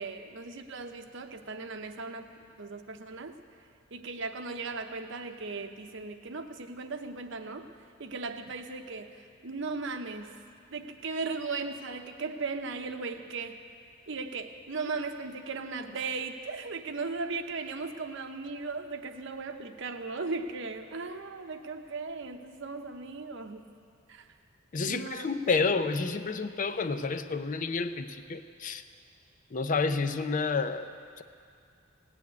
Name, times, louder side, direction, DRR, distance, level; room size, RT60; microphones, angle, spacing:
voice 1, 0.0-3.4 3.9-7.6 8.0-10.3 10.7-13.6 14.1-23.6 24.1-24.3 24.8-25.3, right 4 dB, 65° right, 7 dB, 0.9 m, -37 dB
voice 2, 24.7-28.8 29.5-30.8 31.2-31.3, left 4 dB, 40° left, 10 dB, 0.5 m, -29 dB
16.5 x 7.1 x 9.5 m, 2.3 s
head